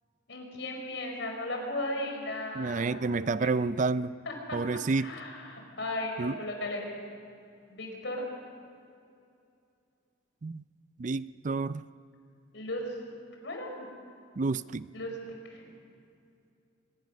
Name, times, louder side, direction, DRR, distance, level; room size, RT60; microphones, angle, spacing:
voice 1, 0.3-3.0 3.4-3.5 4.3-4.6 5.0-7.0 7.7-8.2 12.5-12.8 13.4-13.9 14.9-15.2 15.5-15.6, left 1 dB, 70° left, 2 dB, 5.3 m, -36 dB
voice 2, 2.6-4.1 4.5-5.1 6.2-6.4 10.4-10.6 11.0-11.8 14.4-14.9, right 3 dB, 40° right, 15 dB, 0.4 m, -29 dB
25.5 x 20.5 x 6.4 m, 2.5 s
head